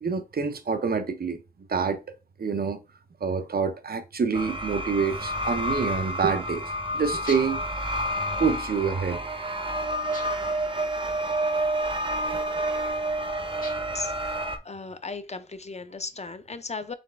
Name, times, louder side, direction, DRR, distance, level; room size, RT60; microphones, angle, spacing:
voice 1, 0.0-1.4 1.7-2.8 3.2-7.6 8.4-9.2, right 5 dB, 75° right, 0.5 m, -27 dB
sound 1, 4.3-14.6, right 1 dB, 35° right, 0.6 m, -29 dB
sound 2, 7.3-7.7 10.1-10.6 13.6-14.1, left 2 dB, 60° left, 1.3 m, -43 dB
voice 2, 13.9-14.4 14.6-16.9, left 4 dB, 45° left, 0.5 m, -36 dB
4.1 x 3.2 x 3.3 m
wide cardioid pair, 60°, 16 cm